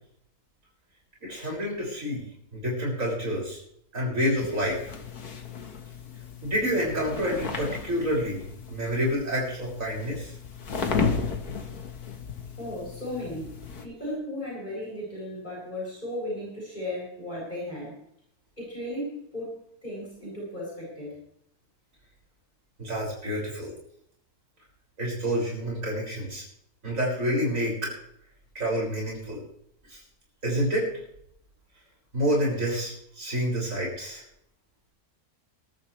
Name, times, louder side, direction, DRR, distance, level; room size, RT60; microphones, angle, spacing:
voice 1, 1.2-2.2 2.5-3.6 3.9-4.9 6.4-8.4 8.7-10.3 22.8-23.7 25.0-26.4 26.8-28.0 28.6-29.4 29.9-30.0 30.4-30.9 32.1-34.2, equal, 50° right, -3 dB, 6.9 m, -28 dB
sound 1, 4.4-13.9, left 5 dB, 65° left, 2.1 m, -34 dB
voice 2, 12.6-13.5 13.8-17.9 18.6-21.1, left 1 dB, 25° left, -5 dB, 8.2 m, -35 dB
21.5 x 13.0 x 3.4 m, 0.71 s
omnidirectional pair, 1.7 m